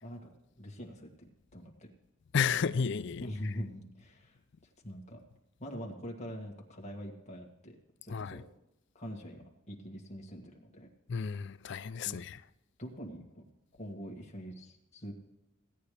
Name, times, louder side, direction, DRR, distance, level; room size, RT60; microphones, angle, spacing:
voice 1, 0.0-1.9 3.2-5.2 5.6-7.8 8.0-8.4 8.9-10.9 12.0-12.2 12.8-13.4 13.8-15.1, equal, 30° left, 2.0 m, -44 dB
voice 2, 2.3-3.3 8.1-8.4 11.1-12.4, left 6 dB, 55° left, 0.4 m, -32 dB
16.5 x 9.4 x 3.4 m
head